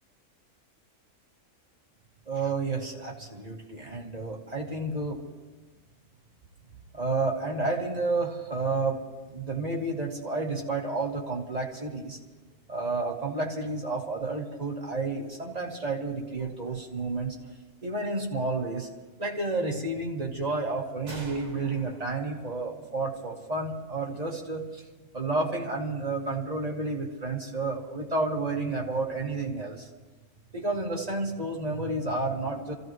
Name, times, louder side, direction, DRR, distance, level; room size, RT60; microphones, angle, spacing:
voice 1, 2.3-5.2 6.9-9.0 9.3-12.2 12.7-17.4 17.8-18.9 19.2-24.8 25.1-29.9 30.5-32.7, right 3 dB, 25° right, -2 dB, 2.0 m, -31 dB
sound 1, 21.1-24.6, right 4 dB, 65° right, 2.0 m, -48 dB
27.5 x 15.0 x 3.1 m, 1.2 s
omnidirectional pair, 1.6 m